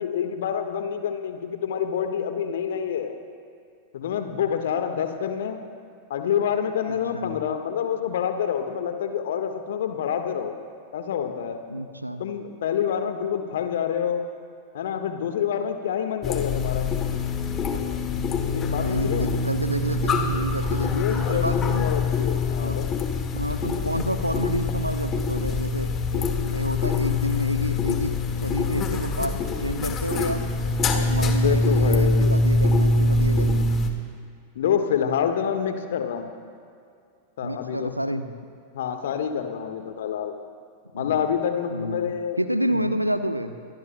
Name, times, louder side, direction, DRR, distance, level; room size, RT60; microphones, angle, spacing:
voice 1, 0.0-3.1 3.9-5.6 6.1-10.5 10.9-11.6 12.2-14.2 14.7-16.9 18.5-19.4 20.8-22.9 31.4-32.4 34.5-36.3 37.4-38.0 38.7-40.4 40.9-42.4 42.7-42.8, left 8 dB, 60° left, 6 dB, 1.5 m, -27 dB
voice 2, 6.9-7.4 11.7-12.2 18.7-21.9 22.6-22.8 23.3-30.4 30.8-33.7 37.4-38.3 40.9-41.2 41.7-42.1 42.4-43.6, equal, 90° right, 10 dB, 0.9 m, -29 dB
sound 1, 16.2-33.9, left 3 dB, 25° left, 1.7 m, -24 dB
29.0 x 22.5 x 2.2 m, 2.4 s
figure-of-eight pair, 90°, 0 cm